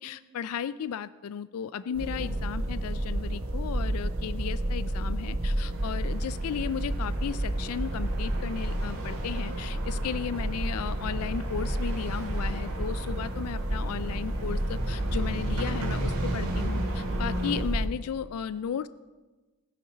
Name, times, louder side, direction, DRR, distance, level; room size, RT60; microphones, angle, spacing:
voice 1, 0.0-18.9, left 7 dB, 85° left, 16 dB, 0.4 m, -35 dB
sound 1, 1.9-17.9, right 1 dB, 75° right, 1.2 m, -31 dB
sound 2, 5.7-17.6, right 1 dB, 90° right, 2.8 m, -37 dB
19.5 x 6.7 x 5.2 m, 1.2 s
head